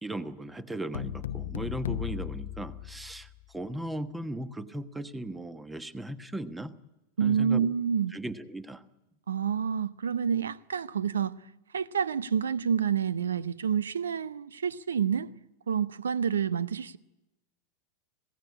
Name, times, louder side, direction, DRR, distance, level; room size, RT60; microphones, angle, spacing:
voice 1, 0.0-6.7 7.2-7.7 8.1-8.8, right 1 dB, 5° right, 1.2 m, -37 dB
sound 1, 0.9-3.4, left 11 dB, 60° left, 0.8 m, -36 dB
voice 2, 7.2-8.1 9.3-11.4 11.7-15.3 15.7-17.0, right 7 dB, 70° right, 0.8 m, -28 dB
26.0 x 17.0 x 8.7 m
figure-of-eight pair, 90°, 0 cm